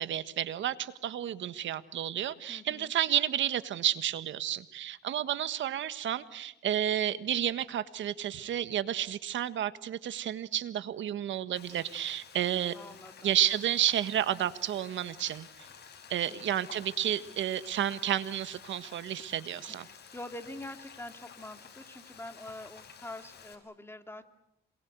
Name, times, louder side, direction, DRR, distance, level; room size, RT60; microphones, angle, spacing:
voice 1, 0.0-12.7 13.2-15.5 16.1-19.8, right 11 dB, 70° right, 13 dB, 1.5 m, -31 dB
voice 2, 2.5-2.9 12.7-13.4 16.3-16.4 19.6-24.2, left 1 dB, 10° left, 7 dB, 2.9 m, -45 dB
Frying (food), 11.6-23.6, left 6 dB, 55° left, 5.8 m, -52 dB
27.0 x 23.0 x 8.1 m, 0.76 s
cardioid pair, 90°, 20 cm